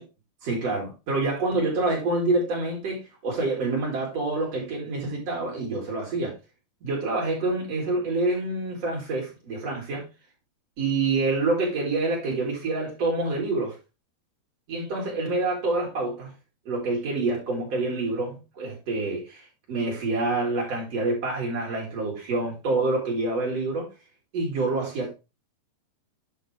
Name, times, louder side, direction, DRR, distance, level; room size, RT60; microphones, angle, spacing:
voice 1, 0.4-6.3 6.8-10.0 10.8-13.8 14.7-16.3 16.7-19.4 19.7-23.9 24.3-25.1, right 2 dB, 40° right, 4.0 m, -27 dB
8.7 x 5.6 x 3.3 m
omnidirectional pair, 4.6 m